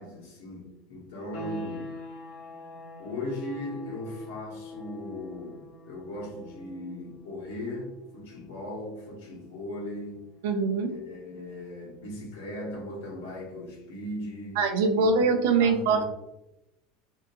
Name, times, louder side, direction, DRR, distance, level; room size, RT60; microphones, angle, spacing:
voice 1, 0.0-1.9 3.0-10.2 10.9-14.6 14.9-15.1 15.4-16.0, left 1 dB, 85° left, -3 dB, 1.1 m, -38 dB
sound 1, 1.3-11.8, left 2 dB, 50° left, 0.6 m, -45 dB
voice 2, 10.4-10.9 14.6-16.0, right 4 dB, 80° right, 5 dB, 0.4 m, -23 dB
2.7 x 2.5 x 2.3 m, 0.90 s
supercardioid pair, 160°, 0 cm